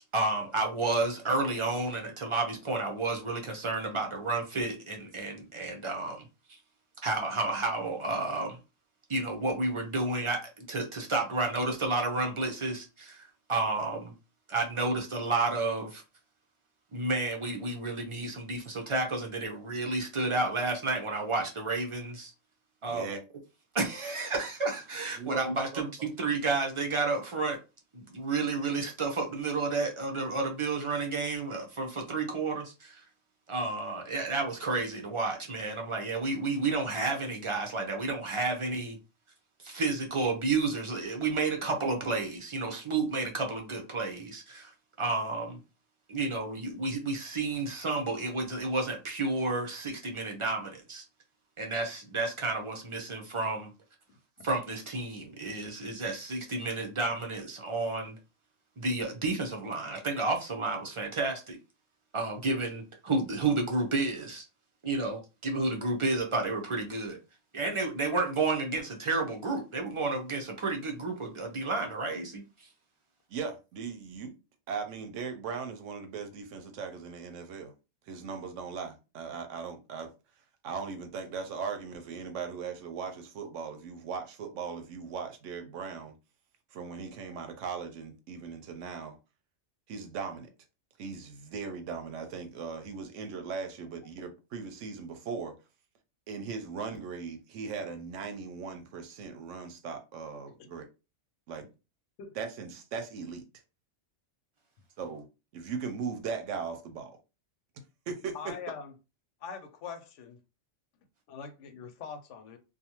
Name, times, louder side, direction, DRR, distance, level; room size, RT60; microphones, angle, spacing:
voice 1, 0.1-6.6 7.0-8.6 9.1-14.1 14.5-16.0 16.9-22.3 22.8-23.1 23.7-27.6 27.9-33.0 33.5-39.0 39.6-44.7 45.0-45.6 46.1-51.0 51.6-53.7 54.4-58.1 58.8-61.6 62.1-64.4 64.8-67.2 67.5-72.7, right 3 dB, 50° right, 0.3 m, -31 dB
voice 2, 22.8-23.2 25.1-25.8 73.3-74.3 74.7-77.7 78.1-80.1 80.6-86.1 86.7-89.2 89.9-90.5 91.0-95.5 96.3-100.9 101.5-101.7 102.3-103.4 105.0-105.3 105.5-107.1 108.1-108.5, right 5 dB, 90° right, 1.0 m, -38 dB
voice 3, 108.3-108.9 109.4-110.4 111.3-112.6, left 6 dB, 80° left, 0.9 m, -42 dB
2.5 x 2.3 x 2.9 m
omnidirectional pair, 1.3 m